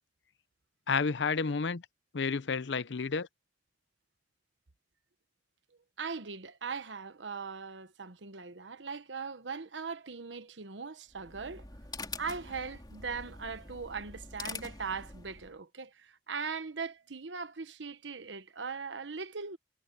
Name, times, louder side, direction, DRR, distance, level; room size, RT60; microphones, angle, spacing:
voice 1, 0.9-1.8 2.1-3.3, left 5 dB, 75° left, 0.6 m, -30 dB
voice 2, 6.0-11.7 12.2-19.6, right 5 dB, 90° right, 1.1 m, -40 dB
sound 1, 11.1-15.6, left 3 dB, 25° left, 3.6 m, -45 dB
head